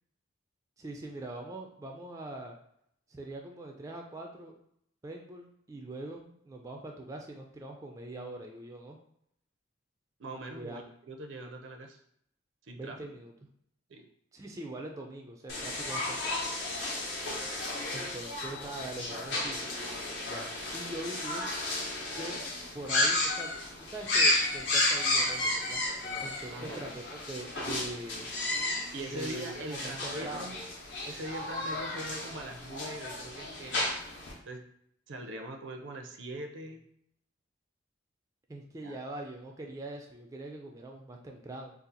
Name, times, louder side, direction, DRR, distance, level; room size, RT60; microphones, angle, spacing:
voice 1, 0.8-2.6 3.1-4.6 5.0-9.0 10.5-10.8 12.8-13.3 14.3-16.5 17.9-19.7 20.3-21.5 22.2-22.4 22.7-23.5 23.8-25.8 26.2-28.3 29.1-30.5 38.5-41.7, right 2 dB, 15° right, 1 dB, 0.3 m, -42 dB
voice 2, 10.2-12.0 12.6-13.0 13.9-14.1 26.5-27.0 28.9-30.6 31.0-33.9 34.5-34.6 35.1-36.9 38.8-39.0, right 1 dB, 75° right, 5 dB, 0.5 m, -42 dB
sound 1, 15.5-34.3, left 2 dB, 65° left, 0.8 m, -33 dB
2.7 x 2.4 x 3.8 m, 0.72 s
head